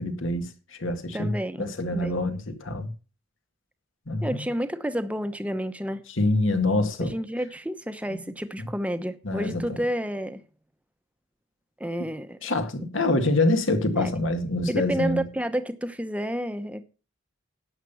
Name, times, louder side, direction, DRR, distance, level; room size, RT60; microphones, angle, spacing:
voice 1, 0.0-2.9 4.1-4.4 6.2-7.1 8.6-8.7 9.2-9.6 12.4-15.2, left 2 dB, 70° left, 1.9 m, -26 dB
voice 2, 1.1-2.2 4.2-6.0 7.1-10.4 11.8-12.4 14.0-14.1 14.7-16.8, equal, 5° right, 0.8 m, -30 dB
11.0 x 7.4 x 7.0 m
head